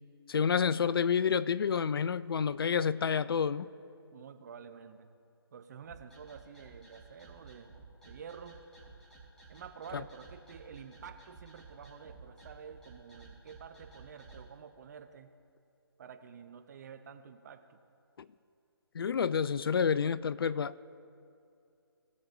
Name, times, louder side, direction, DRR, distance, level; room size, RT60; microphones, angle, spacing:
voice 1, 0.3-3.7 18.9-20.8, left 6 dB, 65° left, 17 dB, 0.4 m, -29 dB
voice 2, 4.1-5.1 5.5-7.7 8.0-8.6 9.5-15.3 16.0-17.8, right 7 dB, 40° right, 8 dB, 0.8 m, -49 dB
sound 1, 5.8-14.4, right 3 dB, 5° left, 1.8 m, -54 dB
19.0 x 7.5 x 2.6 m, 2.6 s
figure-of-eight pair, 150°, 14 cm